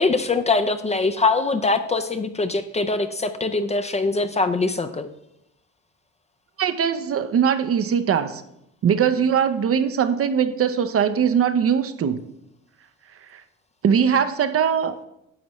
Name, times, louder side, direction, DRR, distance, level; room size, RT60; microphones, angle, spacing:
voice 1, 0.0-5.1, left 3 dB, 20° left, 9 dB, 0.5 m, -22 dB
voice 2, 6.6-8.4 8.8-12.2 13.3-13.4 13.8-14.9, right 7 dB, 50° right, 11 dB, 0.6 m, -21 dB
9.7 x 6.1 x 3.0 m, 0.81 s
cardioid pair, 90°, 30 cm